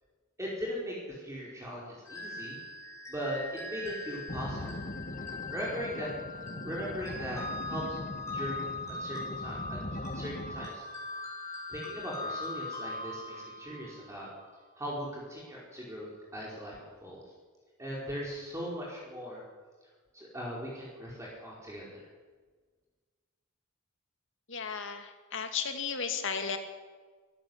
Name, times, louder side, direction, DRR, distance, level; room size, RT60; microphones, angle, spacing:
voice 1, 0.4-2.6 3.1-4.8 5.5-6.1 6.6-8.0 8.3-9.8 10.1-10.8 11.7-14.3 14.8-16.1 16.3-16.7 17.0-17.2 17.8-19.4 20.1-21.9, equal, 15° right, -4 dB, 5.0 m, -39 dB
sound 1, 2.0-14.4, left 2 dB, 15° left, 5.7 m, -41 dB
sound 2, 4.3-10.7, left 1 dB, 35° left, 1.3 m, -41 dB
voice 2, 24.5-26.6, left 6 dB, 60° left, 7 dB, 2.5 m, -34 dB
23.5 x 15.5 x 8.2 m, 1.4 s
head